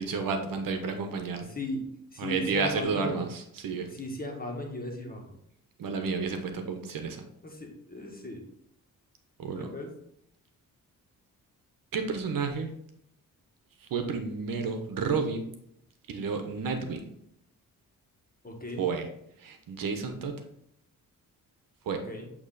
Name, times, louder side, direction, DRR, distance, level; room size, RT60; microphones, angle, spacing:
voice 1, 0.0-1.5 2.2-3.9 5.8-7.2 9.4-9.7 11.9-12.8 13.8-15.5 16.1-17.0 18.8-19.1 19.4-20.3 21.9-22.0, right 5 dB, 70° right, 6 dB, 1.0 m, -31 dB
voice 2, 2.1-3.2 3.9-5.3 7.4-8.4 9.5-9.9 18.4-18.8 22.0-22.3, left 1 dB, 25° left, 1 dB, 1.7 m, -37 dB
8.4 x 3.1 x 4.1 m, 0.73 s
cardioid pair, 65°, 35 cm